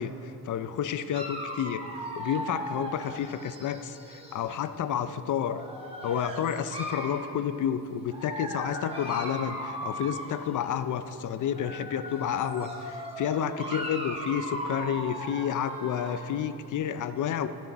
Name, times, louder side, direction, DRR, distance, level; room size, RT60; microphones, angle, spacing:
voice 1, 0.0-5.6 6.0-17.5, left 9 dB, 45° left, 11 dB, 0.5 m, -30 dB
Dog, 1.1-4.5 5.4-7.3 8.1-10.7 11.4-16.3, right 1 dB, 15° right, 1.4 m, -38 dB
13.0 x 9.3 x 4.1 m, 2.8 s
cardioid pair, 110°, 45 cm